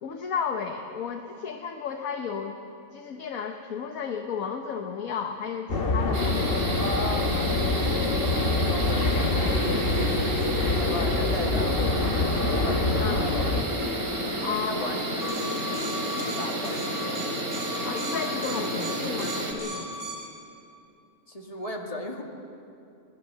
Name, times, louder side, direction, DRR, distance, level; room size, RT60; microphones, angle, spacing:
voice 1, 0.0-2.6 2.9-6.7 13.0-13.3 14.4-14.9 17.8-19.9, left 6 dB, 75° left, 3 dB, 1.5 m, -33 dB
sound 1, 5.7-13.6, left 2 dB, 40° left, 1.4 m, -25 dB
sound 2, 6.1-19.5, right 1 dB, 85° right, 3.2 m, -31 dB
voice 2, 6.7-7.3 7.7-13.8 14.4-17.2 21.3-22.2, left 1 dB, 25° left, 0 dB, 2.2 m, -37 dB
sound 3, 15.2-20.3, equal, 60° right, 4.1 m, -37 dB
25.5 x 19.0 x 6.8 m, 2.6 s
omnidirectional pair, 1.5 m